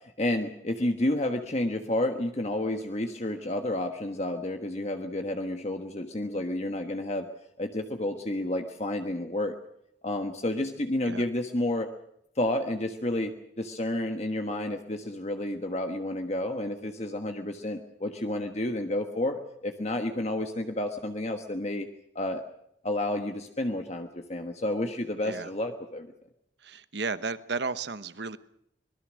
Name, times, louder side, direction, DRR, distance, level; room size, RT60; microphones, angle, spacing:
voice 1, 0.2-7.3 7.6-9.5 10.0-11.9 12.4-21.9 22.1-22.4 22.8-26.1, left 1 dB, 35° left, 5 dB, 1.4 m, -30 dB
voice 2, 26.6-28.4, right 4 dB, 65° right, 13 dB, 1.1 m, -33 dB
25.0 x 20.5 x 6.3 m, 0.74 s
head